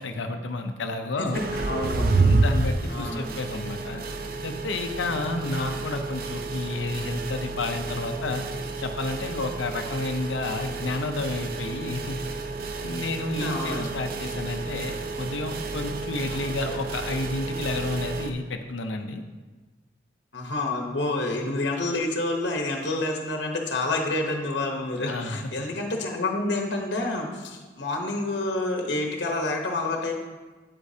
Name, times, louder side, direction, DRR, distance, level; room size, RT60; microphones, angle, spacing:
voice 1, 0.0-1.4 2.2-4.0 4.4-8.4 8.8-12.2 12.8-19.2 25.1-25.4, left 2 dB, 85° left, 6 dB, 0.7 m, -31 dB
sound 1, 1.3-18.3, right 3 dB, 50° right, 0.5 m, -30 dB
voice 2, 1.5-2.2 2.9-3.4 5.6-5.8 13.4-13.9 16.3-16.8 20.3-30.1, left 2 dB, 70° left, 1 dB, 1.0 m, -28 dB
8.9 x 8.1 x 2.8 m, 1.3 s
head